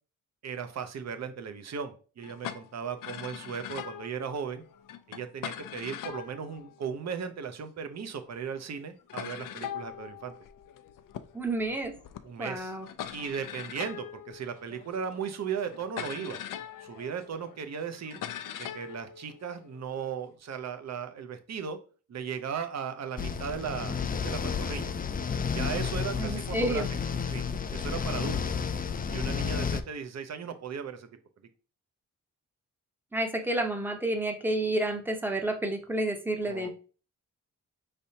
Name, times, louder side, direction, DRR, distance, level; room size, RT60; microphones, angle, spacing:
voice 1, 0.4-4.6 5.1-10.3 12.2-12.7 13.1-16.4 16.8-18.2 18.6-21.8 22.1-24.9 25.5-26.8 27.3-27.4 27.7-28.4 29.1-31.1 36.4-36.7, right 7 dB, 55° right, 8 dB, 0.7 m, -37 dB
sound 1, 2.2-7.5 8.3-8.4 8.6-8.7 9.1-20.3, left 10 dB, 85° left, 0.5 m, -42 dB
voice 2, 11.3-11.9 12.4-12.9 26.2-26.9 33.1-36.7, right 1 dB, 5° right, 4 dB, 0.7 m, -30 dB
sound 2, 23.2-29.8, left 6 dB, 30° left, 0.3 m, -31 dB
5.3 x 3.4 x 2.8 m, 0.37 s
wide cardioid pair, 120°, 32 cm